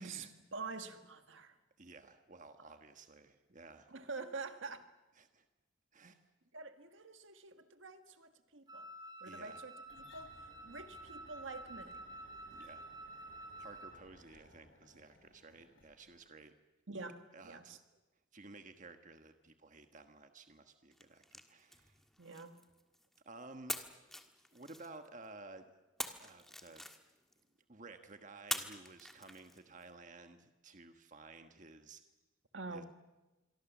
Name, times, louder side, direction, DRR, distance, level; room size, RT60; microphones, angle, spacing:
voice 1, 0.0-1.6 3.9-4.9 6.5-8.9 9.2-12.0 16.9-17.8 22.2-22.6 32.5-32.9, right 4 dB, 70° right, 8 dB, 1.7 m, -47 dB
voice 2, 1.8-3.9 5.2-5.4 5.9-6.2 9.2-9.6 12.5-12.8 13.6-16.5 17.3-17.8 18.3-22.0 23.2-23.9 24.5-25.7 26.2-26.8 27.7-32.0 32.7-32.8, right 3 dB, 40° right, 7 dB, 1.4 m, -54 dB
Wind instrument woodwind instrument, 8.7-14.0, right 1 dB, 20° right, 3.6 m, -50 dB
sound 1, 9.8-16.3, left 1 dB, 65° left, 7.7 m, -62 dB
sound 2, 20.9-23.2 23.7-25.3 26.0-27.4 28.5-29.8, left 1 dB, ahead, 1.5 m, -45 dB
26.5 x 23.5 x 7.3 m, 1.1 s
head